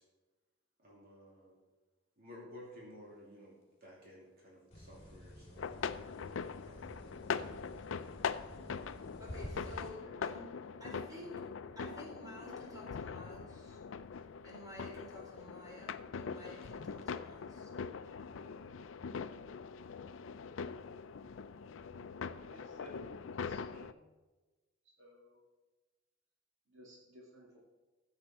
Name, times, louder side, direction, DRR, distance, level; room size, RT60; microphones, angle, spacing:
voice 1, 0.8-1.6 2.2-3.5 3.8-5.4 6.7-7.5, left 1 dB, 50° right, -4 dB, 2.7 m, -54 dB
sound 1, 4.7-9.9, left 1 dB, 35° left, 2.5 m, -50 dB
sound 2, 5.6-23.9, left 5 dB, 75° left, 0.5 m, -42 dB
voice 2, 9.2-10.5 10.8-11.3 11.8-13.8 14.4-17.7, equal, 20° right, -3 dB, 4.2 m, -52 dB
voice 3, 22.3-24.1 25.0-25.4 26.7-27.6, equal, 70° right, -2 dB, 2.1 m, -57 dB
14.0 x 8.0 x 4.3 m, 1.2 s
head